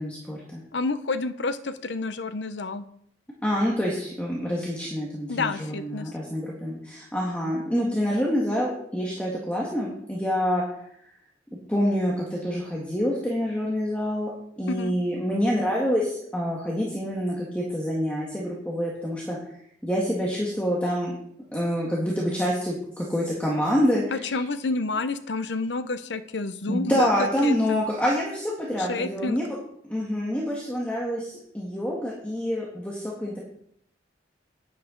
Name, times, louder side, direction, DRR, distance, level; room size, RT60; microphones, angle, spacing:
voice 1, 0.0-0.6 3.4-10.6 11.7-14.3 14.6-19.4 19.8-21.2 21.5-24.3 26.7-29.6 29.8-33.4, equal, 10° left, -4 dB, 1.7 m, -27 dB
voice 2, 0.7-2.9 5.3-6.1 14.7-14.9 24.1-27.9 28.8-29.4, left 3 dB, 75° left, 11 dB, 0.8 m, -29 dB
10.0 x 9.5 x 3.9 m, 0.68 s
head